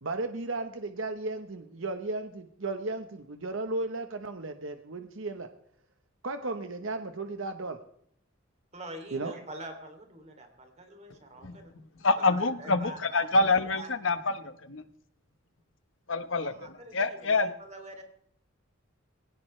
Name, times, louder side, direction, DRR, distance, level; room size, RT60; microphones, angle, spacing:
voice 1, 0.0-5.5 6.2-7.8 9.1-9.3, right 2 dB, 70° right, 7 dB, 1.1 m, -35 dB
voice 2, 8.7-11.7 12.2-13.9 16.4-18.0, right 1 dB, 35° right, 4 dB, 3.0 m, -45 dB
voice 3, 12.0-14.8 16.1-16.5 16.9-17.5, left 3 dB, 65° left, 10 dB, 1.2 m, -26 dB
21.0 x 17.5 x 3.3 m, 0.70 s
head